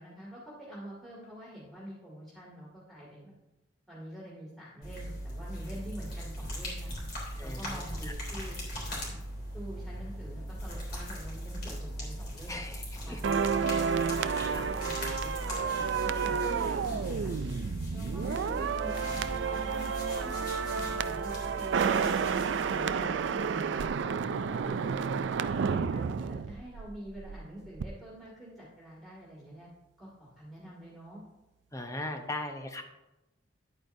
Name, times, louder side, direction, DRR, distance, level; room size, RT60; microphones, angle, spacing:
voice 1, 0.0-3.3 3.9-6.9 7.4-8.6 8.9-9.2 9.5-12.6 13.0-17.3 17.9-22.2 22.6-24.2 24.5-29.7 30.0-31.2, equal, ahead, -7 dB, 2.2 m, -46 dB
sound 1, 4.8-23.7, equal, 55° left, 3.5 m, -39 dB
voice 2, 7.4-8.1 12.5-13.5 14.5-14.7 24.5-25.0 31.7-32.8, left 2 dB, 15° left, 5 dB, 0.8 m, -40 dB
sound 2, 13.2-27.4 27.6-27.9, right 6 dB, 65° right, 0.4 m, -31 dB
11.0 x 8.8 x 2.7 m, 0.97 s
head